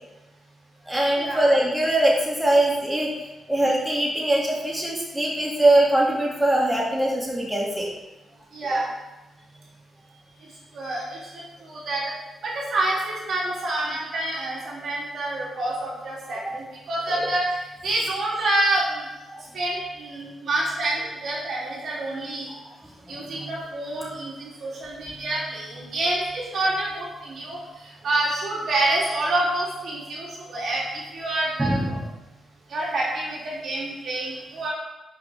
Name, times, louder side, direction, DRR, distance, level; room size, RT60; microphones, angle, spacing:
voice 1, 0.9-7.9 8.7-8.8 17.1-17.3 19.3-19.4 23.1-23.2 31.6-31.9, right 1 dB, 10° right, -3 dB, 2.5 m, -22 dB
voice 2, 8.5-8.8 10.7-12.0 12.4-19.1 19.5-22.5 23.1-32.0 32.7-34.7, right 2 dB, 65° right, -5 dB, 3.2 m, -27 dB
10.0 x 6.4 x 3.6 m, 1.0 s
supercardioid pair, 55°, 0 cm